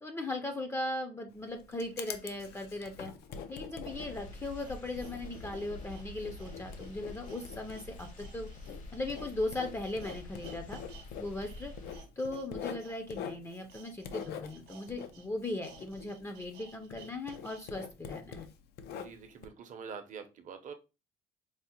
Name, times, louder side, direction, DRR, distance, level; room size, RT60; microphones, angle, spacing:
voice 1, 0.0-3.1 3.5-8.5 8.9-10.8 11.2-11.7 12.2-18.5, left 2 dB, 15° left, 5 dB, 0.5 m, -38 dB
Writing, 1.3-16.6 16.9-19.5, left 7 dB, 75° left, 0.5 m, -45 dB
sound 1, 2.9-3.0 3.7-11.1 11.3-17.6 18.0-18.1, right 7 dB, 85° right, 0.7 m, -57 dB
sound 2, 3.8-12.1, left 2 dB, 45° left, 0.9 m, -48 dB
voice 2, 19.0-20.7, right 6 dB, 50° right, 7 dB, 0.7 m, -45 dB
4.7 x 2.0 x 2.8 m, 0.29 s
cardioid pair, 110°, 17 cm